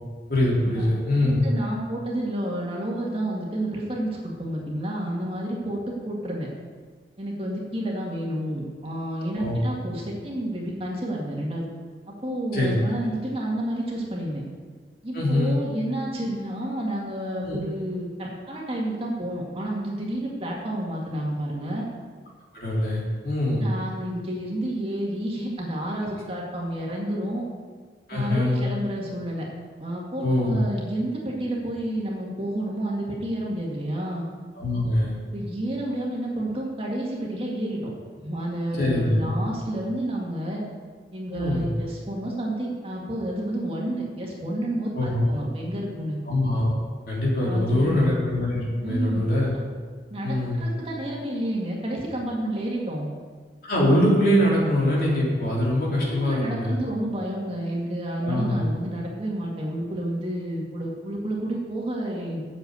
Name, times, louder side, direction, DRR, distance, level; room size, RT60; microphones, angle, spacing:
voice 1, 0.3-1.4 9.4-9.6 12.5-12.7 15.1-15.6 17.4-17.6 22.5-23.7 28.1-28.6 30.2-30.6 34.6-35.2 38.8-39.3 41.3-41.7 44.9-45.3 46.3-46.7 47.1-49.5 50.2-50.6 53.6-56.8 58.2-58.6, left 1 dB, 55° left, -5 dB, 3.6 m, -23 dB
voice 2, 1.2-6.5 7.2-11.7 12.1-14.4 15.0-21.9 23.6-27.4 28.1-29.5 29.8-34.3 35.3-37.9 38.2-40.6 41.1-46.2 47.4-48.2 48.8-49.3 50.1-53.1 56.0-62.4, right 1 dB, 30° right, -3 dB, 2.1 m, -30 dB
8.2 x 7.5 x 8.2 m, 1.5 s
head